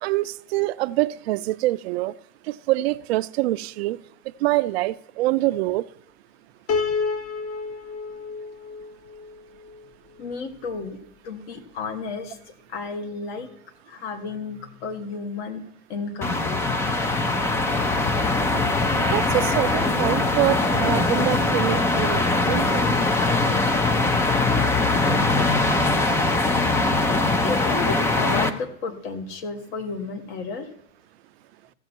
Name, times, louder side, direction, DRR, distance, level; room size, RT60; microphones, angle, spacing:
voice 1, 0.0-2.1 2.5-4.0 4.4-5.8 19.1-22.8, right 17 dB, 60° right, 0.5 m, -25 dB
Piano, 6.7-9.9, left 4 dB, 40° left, 1.3 m, -29 dB
voice 2, 10.2-11.0 11.2-13.5 13.9-15.6 15.9-16.7 27.4-30.7, left 4 dB, 60° left, 1.8 m, -32 dB
sound 1, 16.2-28.5, left 2 dB, 10° left, 0.3 m, -22 dB
15.5 x 6.9 x 4.5 m
supercardioid pair, 135°, 35 cm